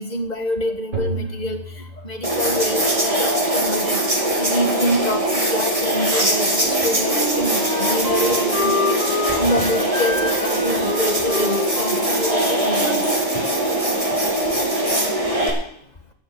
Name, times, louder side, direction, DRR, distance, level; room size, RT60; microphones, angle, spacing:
voice 1, 0.0-13.4, left 1 dB, 35° left, 6 dB, 1.8 m, -27 dB
sound 1, 0.9-2.9, right 2 dB, 80° right, 6.1 m, -32 dB
sound 2, 2.2-15.5, right 1 dB, 25° right, 2.8 m, -21 dB
Wind instrument woodwind instrument, 6.6-14.1, left 1 dB, 50° right, 6.0 m, -28 dB
13.5 x 7.0 x 8.7 m, 0.70 s
omnidirectional pair, 1.3 m